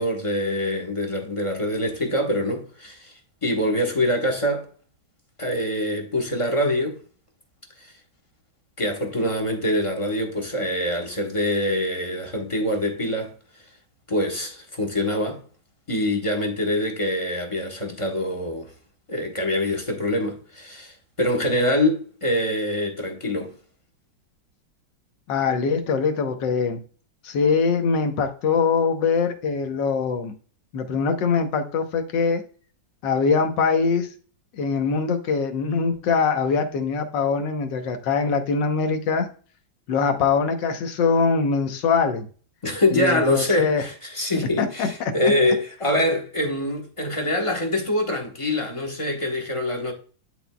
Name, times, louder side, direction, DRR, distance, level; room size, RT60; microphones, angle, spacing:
voice 1, 0.0-4.7 5.4-7.0 7.8-7.9 8.8-13.4 14.1-15.4 15.9-18.7 19.1-23.5 42.6-49.9, left 1 dB, 20° left, 0.9 m, -24 dB
voice 2, 25.3-26.8 27.2-30.3 30.7-32.4 33.0-34.1 34.5-39.3 39.9-42.2 42.9-43.8 44.6-45.1, left 5 dB, 65° left, 1.6 m, -22 dB
11.0 x 4.0 x 2.2 m
omnidirectional pair, 2.2 m